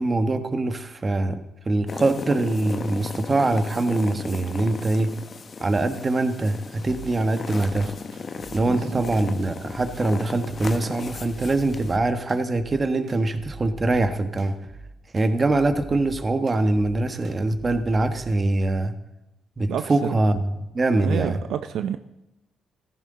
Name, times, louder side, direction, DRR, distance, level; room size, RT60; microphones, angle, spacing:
voice 1, 0.0-1.4 1.6-5.1 5.6-7.9 8.5-14.5 15.1-18.9 19.6-21.4, right 2 dB, 30° right, 9 dB, 1.3 m, -23 dB
sound 1, 1.9-12.0, left 5 dB, 40° left, 0.9 m, -36 dB
sound 2, 6.6-18.3, right 3 dB, 55° right, 1.8 m, -44 dB
voice 2, 8.7-9.0 19.7-20.1 21.0-22.0, right 9 dB, 75° right, 10 dB, 0.5 m, -29 dB
15.0 x 14.5 x 3.8 m, 0.96 s
cardioid pair, 90°, 0 cm